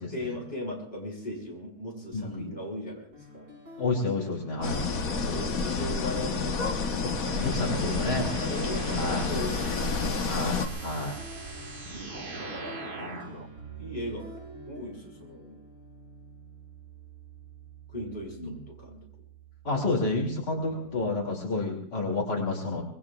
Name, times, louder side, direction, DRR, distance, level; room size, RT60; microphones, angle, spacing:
voice 1, 0.1-3.5 5.0-6.6 7.9-10.2 11.9-12.8 13.8-14.4 14.7-15.6 17.9-19.0 20.6-21.0, left 1 dB, 30° left, -1 dB, 5.8 m, -38 dB
voice 2, 2.1-2.5 3.8-4.8 7.0-8.3 8.9-9.2 10.2-11.2 13.0-13.4 18.4-18.5 19.7-22.8, left 2 dB, 80° left, 0 dB, 3.4 m, -30 dB
sound 1, 3.1-21.1, right 3 dB, 60° right, 6.0 m, -47 dB
sound 2, 4.6-10.7, left 4 dB, 55° left, 1.6 m, -29 dB
sound 3, 7.0-13.5, right 3 dB, 35° right, 1.3 m, -41 dB
26.0 x 20.5 x 2.4 m, 0.62 s
omnidirectional pair, 1.8 m